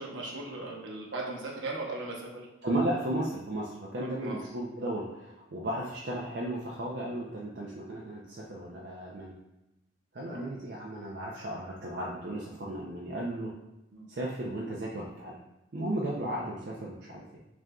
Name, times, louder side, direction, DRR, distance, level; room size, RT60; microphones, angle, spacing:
voice 1, 0.0-2.4 4.0-4.3 10.2-10.4 13.9-14.1, right 2 dB, 70° right, -2 dB, 0.8 m, -38 dB
voice 2, 2.6-9.3 10.1-13.5 14.1-15.4 15.7-17.4, right 1 dB, 55° right, -4 dB, 0.5 m, -35 dB
6.2 x 2.6 x 2.3 m, 0.95 s
head